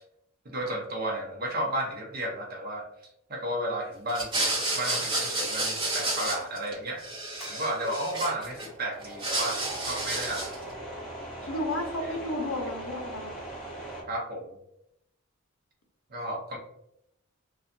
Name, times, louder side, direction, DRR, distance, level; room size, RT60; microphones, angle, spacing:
voice 1, 0.4-2.9 3.3-7.0 7.5-10.9 11.5-11.6 14.1-14.6 16.1-16.6, right 1 dB, 45° right, 0 dB, 0.6 m, -33 dB
sound 1, 4.1-6.7 7.0-8.7 9.0-10.6, right 2 dB, 20° right, 0.9 m, -30 dB
sound 2, 7.4-14.0, right 1 dB, ahead, 0.7 m, -41 dB
voice 2, 11.5-13.4, left 1 dB, 70° left, 3 dB, 0.6 m, -32 dB
2.7 x 2.2 x 2.5 m, 0.77 s
head